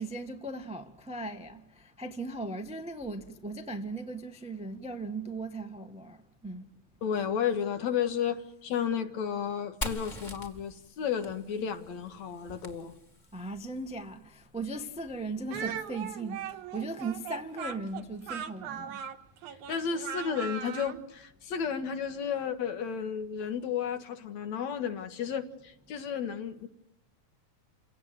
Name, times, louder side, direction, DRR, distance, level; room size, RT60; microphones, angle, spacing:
voice 1, 0.0-6.2 6.4-6.7 13.3-19.0, right 2 dB, 5° right, 0.6 m, -38 dB
voice 2, 7.0-12.9 19.7-26.7, left 7 dB, 65° left, 2.8 m, -32 dB
Fire, 9.8-13.5, left 1 dB, 15° left, 1.9 m, -42 dB
Speech, 15.5-21.0, right 8 dB, 80° right, 2.7 m, -39 dB
29.0 x 17.0 x 9.3 m
omnidirectional pair, 3.5 m